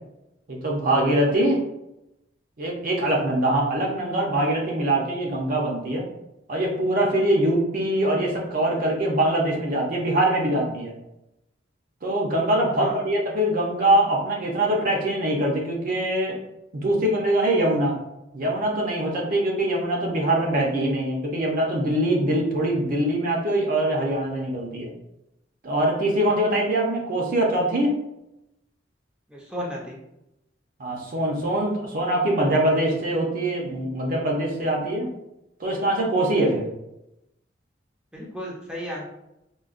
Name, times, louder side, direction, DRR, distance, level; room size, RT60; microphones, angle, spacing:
voice 1, 0.5-1.6 2.6-6.0 6.5-10.9 12.0-16.4 16.8-18.0 18.3-24.9 25.6-28.0 30.8-35.1 35.6-36.7, right 1 dB, 50° right, -1 dB, 0.6 m, -23 dB
voice 2, 29.3-30.0 38.1-39.1, equal, 5° right, -4 dB, 0.5 m, -34 dB
3.8 x 2.2 x 2.4 m, 0.87 s
head